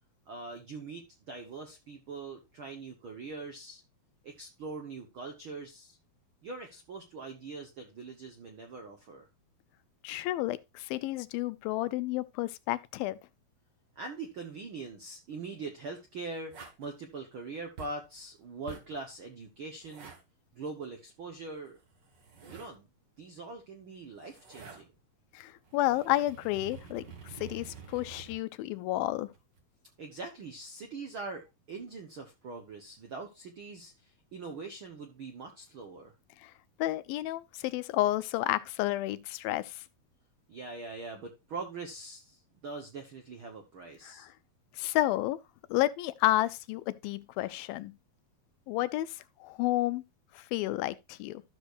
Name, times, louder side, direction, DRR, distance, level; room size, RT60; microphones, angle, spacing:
voice 1, 0.3-3.8 4.2-6.0 6.4-9.3 13.9-16.5 16.8-20.1 20.5-21.8 22.4-22.9 23.2-24.9 30.0-36.1 40.5-44.3, right 3 dB, 70° right, 1.2 m, -42 dB
voice 2, 10.0-13.2 25.3-29.3 36.4-36.5 36.8-39.8 44.0-44.3 44.8-45.4 45.7-47.9 48.7-50.0 50.4-51.4, left 16 dB, 80° left, 2.3 m, -31 dB
sound 1, 16.5-16.9 17.8-18.1 18.7-19.0 19.8-20.2 21.8-22.8 24.0-24.8 25.4-28.4 29.3-29.6, right 5 dB, 45° right, 1.5 m, -48 dB
13.0 x 6.6 x 2.6 m
omnidirectional pair, 4.2 m